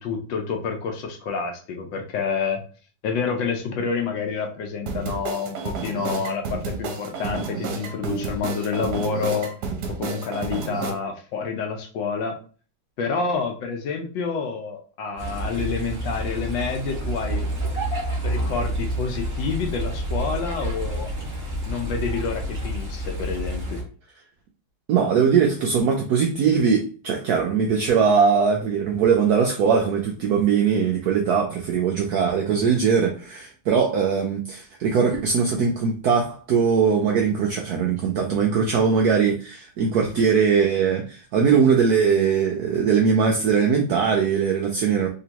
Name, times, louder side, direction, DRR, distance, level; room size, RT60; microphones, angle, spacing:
voice 1, 0.0-2.6 3.0-9.5 9.9-12.4 13.0-17.4 18.2-21.1 21.6-23.8, left 5 dB, 70° left, 3 dB, 1.3 m, -28 dB
sound 1, 4.9-10.9, right 4 dB, 65° right, 1.1 m, -30 dB
sound 2, 15.2-23.8, right 1 dB, 15° right, 1.4 m, -29 dB
voice 2, 24.9-45.1, right 6 dB, 80° right, 1 dB, 0.8 m, -21 dB
3.4 x 2.9 x 2.8 m, 0.39 s
omnidirectional pair, 2.2 m